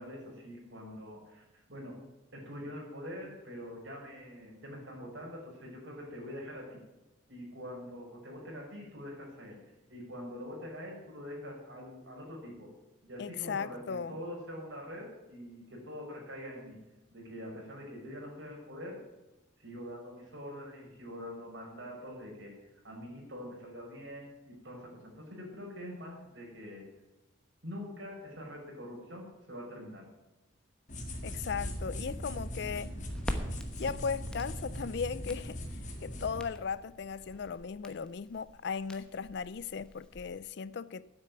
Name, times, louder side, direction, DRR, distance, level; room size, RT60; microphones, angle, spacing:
voice 1, 0.0-1.4 1.7-2.0 2.3-6.8 7.3-9.6 9.9-12.7 13.0-16.8 17.1-19.0 19.6-22.5 22.8-26.9 27.6-30.1, equal, 60° right, 5.7 m, -44 dB
voice 2, 13.2-14.2 31.2-32.9 33.8-35.6 36.0-41.1, left 6 dB, 55° left, 0.4 m, -37 dB
sound 1, 30.9-36.4, equal, 35° left, 1.8 m, -40 dB
Crackle, 33.1-40.4, equal, 5° left, 1.0 m, -44 dB
9.8 x 8.1 x 9.3 m
head